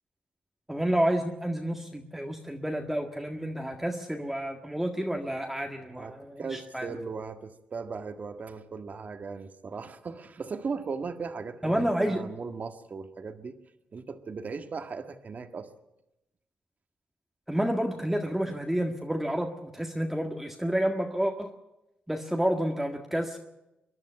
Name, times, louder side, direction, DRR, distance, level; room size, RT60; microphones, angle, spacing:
voice 1, 0.7-6.9 11.6-12.3 17.5-21.5 22.1-23.4, right 1 dB, 5° right, 2 dB, 1.8 m, -29 dB
voice 2, 5.9-13.6 13.9-15.7, right 5 dB, 50° right, 8 dB, 1.7 m, -38 dB
24.0 x 11.0 x 10.0 m, 0.92 s
cardioid pair, 70°, 4 cm